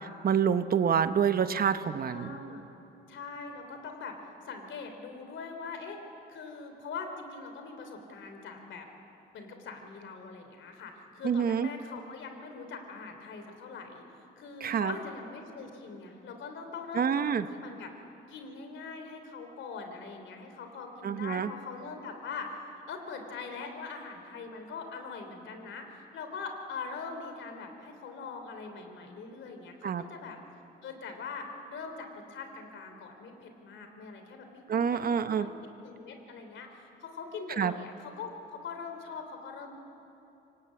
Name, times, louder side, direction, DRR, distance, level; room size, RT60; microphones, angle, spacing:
voice 1, 0.2-2.3 11.2-11.7 14.6-14.9 17.0-17.5 21.0-21.5 29.8-30.0 34.7-35.5 37.6-37.7, right 7 dB, 50° right, 11 dB, 0.9 m, -27 dB
voice 2, 2.1-2.6 3.1-4.2 4.4-6.0 6.3-8.9 9.3-17.9 18.3-22.6 22.9-30.4 30.8-35.5 35.8-39.7, left 4 dB, 75° left, 5 dB, 3.2 m, -42 dB
25.0 x 18.5 x 8.3 m, 3.0 s
cardioid pair, 90°, 20 cm